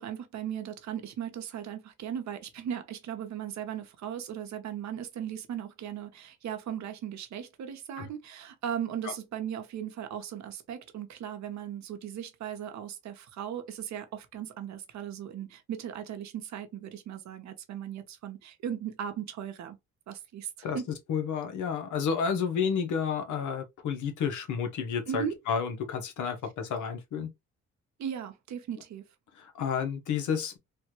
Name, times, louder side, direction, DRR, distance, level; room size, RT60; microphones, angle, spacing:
voice 1, 0.0-19.8 20.1-20.9 25.1-25.4 28.0-29.0, right 9 dB, 65° right, 0.8 m, -37 dB
voice 2, 21.1-27.3 29.4-30.6, left 6 dB, 80° left, 0.9 m, -31 dB
3.4 x 2.2 x 2.9 m
cardioid pair, 90°, 30 cm